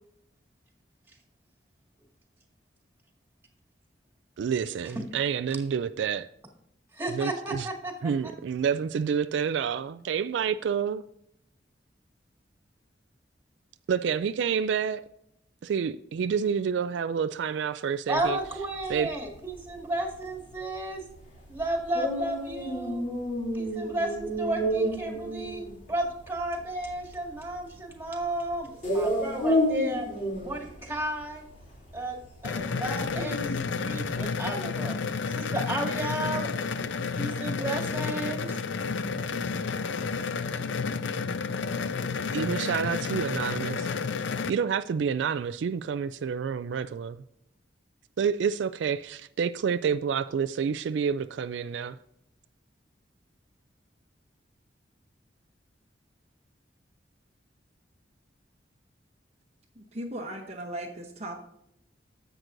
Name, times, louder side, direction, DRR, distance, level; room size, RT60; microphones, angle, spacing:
voice 1, 4.4-6.3 7.1-7.7 8.0-11.0 13.9-15.1 15.6-18.4 18.9-19.1 42.3-43.9 44.5-47.2 48.2-52.0, right 7 dB, 75° right, 0.3 m, -28 dB
voice 2, 6.9-7.9 18.1-21.0 21.5-23.0 23.5-30.1 30.4-31.4 31.9-32.2 32.4-33.4 33.8-36.5 37.2-38.6, right 1 dB, 15° right, 1.9 m, -33 dB
sound 1, 18.2-34.3, equal, 45° left, 2.8 m, -32 dB
sound 2, 32.4-44.5, left 5 dB, 80° left, 0.5 m, -31 dB
voice 3, 59.8-61.4, right 1 dB, 35° right, 0.9 m, -37 dB
10.5 x 7.8 x 2.6 m
head